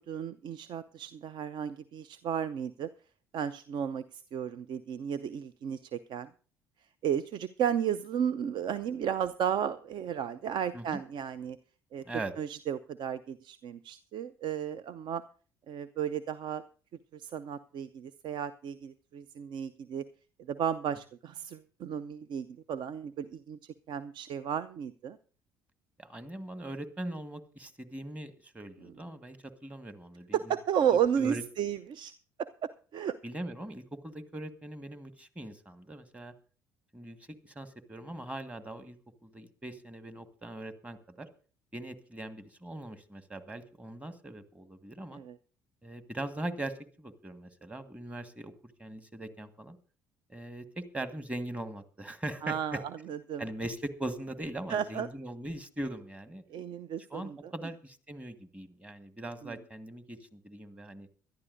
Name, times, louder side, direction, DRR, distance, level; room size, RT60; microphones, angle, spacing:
voice 1, 0.0-2.9 3.3-6.3 7.0-11.6 11.9-12.0 12.4-15.2 15.7-16.6 17.1-20.0 20.4-25.2 28.8-28.9 30.3-32.1 32.4-32.5 32.9-33.2 45.1-45.4 52.4-52.8 53.1-53.4 54.7-55.1 56.5-57.5 59.4-59.5, right 8 dB, 50° right, 15 dB, 0.5 m, -33 dB
voice 2, 26.0-30.5 31.2-31.4 33.2-36.3 36.9-39.0 39.2-41.3 41.7-45.2 45.8-49.8 50.3-52.8 53.4-56.4 57.1-61.1, right 1 dB, 15° right, 11 dB, 1.5 m, -41 dB
23.0 x 11.5 x 2.6 m, 0.39 s
figure-of-eight pair, 55°, 10 cm